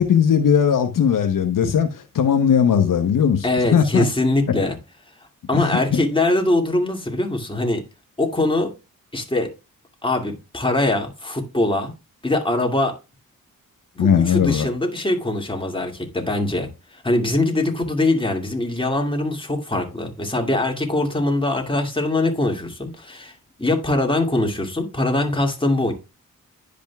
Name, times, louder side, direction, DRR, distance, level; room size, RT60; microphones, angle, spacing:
voice 1, 0.0-4.1 5.5-6.0 14.0-14.7, left 8 dB, 70° left, 1.0 m, -18 dB
voice 2, 3.4-4.7 5.5-7.8 8.2-8.7 9.1-9.5 10.0-11.9 12.2-12.9 13.9-23.3 23.6-25.9, left 2 dB, 15° left, 2.3 m, -22 dB
10.5 x 5.2 x 2.3 m
cardioid pair, 60°, 34 cm